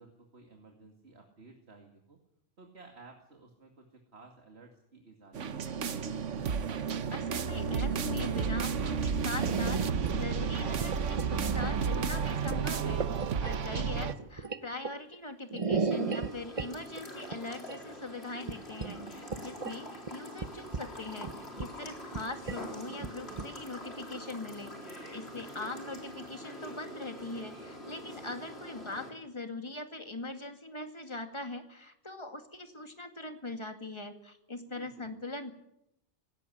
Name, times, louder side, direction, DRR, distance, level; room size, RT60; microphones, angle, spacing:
voice 1, 0.0-2.2 2.6-6.1 25.5-25.6 34.7-35.1, right 3 dB, 60° right, 2 dB, 2.7 m, -55 dB
sound 1, 5.3-14.1, right 6 dB, 80° right, 1.4 m, -32 dB
voice 2, 7.1-35.5, left 2 dB, 25° left, 6 dB, 2.2 m, -41 dB
sound 2, 9.4-10.1 10.4-12.1 12.4-13.5 14.1-15.1 15.5-16.7 17.0-17.1 17.3-17.8 18.5-18.6 18.8-19.7 20.1-20.2 20.4-20.8 21.2-21.8 22.1-22.2 22.5-22.6 22.9-23.5, right 4 dB, 30° right, 0.9 m, -34 dB
sound 3, 15.9-29.1, left 1 dB, 60° left, 4.4 m, -45 dB
18.5 x 17.5 x 9.9 m, 0.83 s
omnidirectional pair, 1.2 m